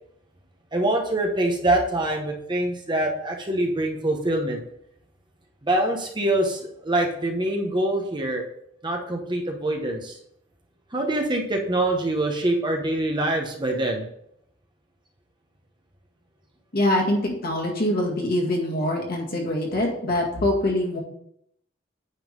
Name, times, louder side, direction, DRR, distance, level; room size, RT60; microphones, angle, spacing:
voice 1, 0.7-4.6 5.6-8.4 8.8-10.2 10.9-14.1, right 1 dB, 25° right, 1 dB, 0.9 m, -24 dB
voice 2, 16.7-21.0, left 1 dB, 50° left, -1 dB, 2.0 m, -24 dB
9.2 x 3.8 x 5.1 m, 0.74 s
head